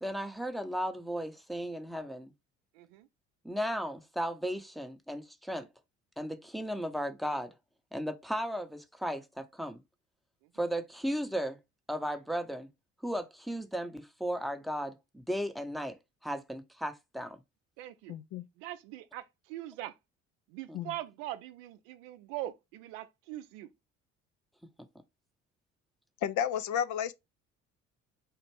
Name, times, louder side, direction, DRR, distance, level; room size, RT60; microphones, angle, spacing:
voice 1, 0.0-2.3 3.4-5.7 6.2-7.5 7.9-9.8 10.5-11.6 11.9-12.7 13.0-16.0 16.2-17.4 20.7-20.8, equal, ahead, 0.7 m, -35 dB
voice 2, 2.7-3.1 10.4-10.5 17.8-18.2 18.6-20.0 20.5-23.7, right 14 dB, 70° right, 0.5 m, -42 dB
voice 3, 18.1-18.5 20.7-20.9 26.2-27.1, left 9 dB, 55° left, 0.5 m, -32 dB
4.4 x 2.4 x 3.2 m
hypercardioid pair, 50°, 37 cm